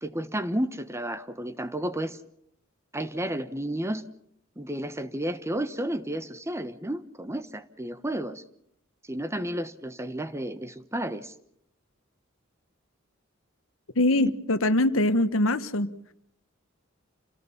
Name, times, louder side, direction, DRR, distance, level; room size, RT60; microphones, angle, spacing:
voice 1, 0.0-2.2 2.9-4.1 4.6-8.4 9.1-11.3 14.1-14.3, right 1 dB, 15° right, 12 dB, 1.1 m, -32 dB
voice 2, 14.0-15.9, left 1 dB, 80° left, 12 dB, 1.3 m, -23 dB
28.0 x 17.5 x 7.2 m, 0.74 s
head